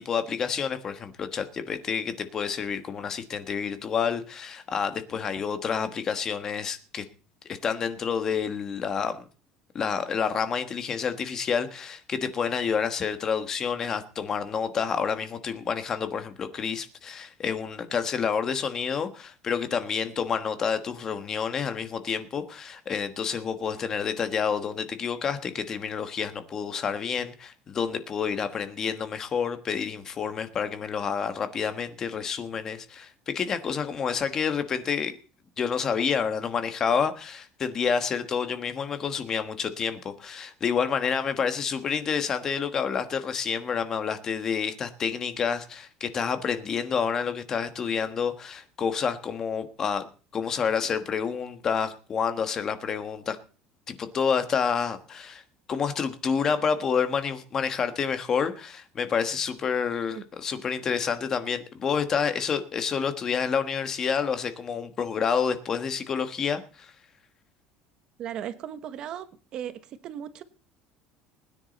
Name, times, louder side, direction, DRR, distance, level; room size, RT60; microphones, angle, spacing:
voice 1, 0.0-7.0 7.4-9.2 9.7-35.1 35.6-50.1 50.3-53.4 53.9-55.4 55.7-66.9, left 6 dB, 25° left, 1.3 m, -29 dB
voice 2, 68.2-69.3 69.5-69.7 70.0-70.4, right 10 dB, 40° right, 1.1 m, -36 dB
20.5 x 9.9 x 4.1 m
cardioid pair, 170°, 2 cm